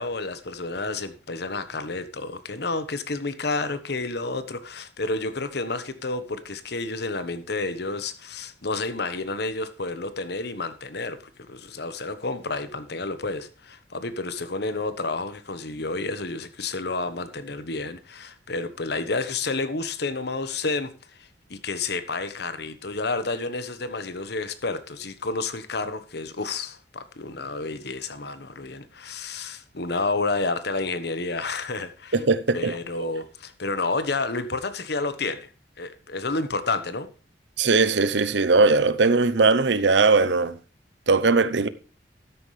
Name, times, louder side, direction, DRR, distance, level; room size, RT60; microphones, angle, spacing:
voice 1, 0.0-11.2 11.5-20.9 21.2-32.2 32.5-35.5 35.8-37.1, left 3 dB, 65° left, 1.2 m, -30 dB
voice 2, 32.1-32.8 37.6-40.6 41.1-41.7, right 3 dB, 85° right, 0.8 m, -19 dB
13.0 x 9.8 x 3.3 m
head